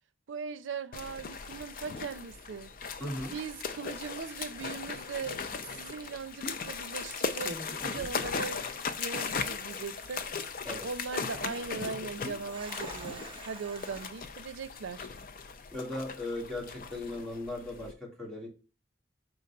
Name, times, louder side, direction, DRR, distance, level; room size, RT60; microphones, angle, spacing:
voice 1, 0.3-2.7 3.3-5.4 5.7-7.6 7.8-8.6 9.0-10.2 10.8-15.1, right 5 dB, 85° right, 0.5 m, -39 dB
sound 1, 0.9-17.9, left 5 dB, 45° left, 0.5 m, -38 dB
voice 2, 3.0-3.3 7.8-8.1 10.7-10.9 15.7-18.5, left 1 dB, ahead, 1.7 m, -38 dB
sound 2, 5.8-6.1 6.9-7.0 7.4-8.9 9.2-9.3 9.9-10.3 12.1-14.1, right 2 dB, 25° right, 0.7 m, -47 dB
4.5 x 3.9 x 5.4 m
head